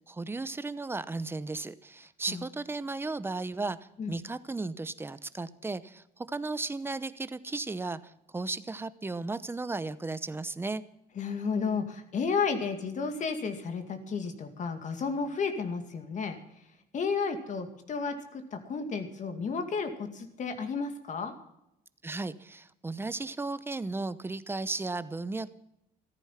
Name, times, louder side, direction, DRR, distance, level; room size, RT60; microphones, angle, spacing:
voice 1, 0.1-3.8 4.1-10.8 22.0-25.5, right 3 dB, 15° right, 15 dB, 0.8 m, -35 dB
voice 2, 11.2-16.4 16.9-21.3, left 5 dB, 45° left, 6 dB, 2.3 m, -32 dB
14.0 x 14.0 x 5.9 m, 0.82 s
cardioid pair, 110°, 17 cm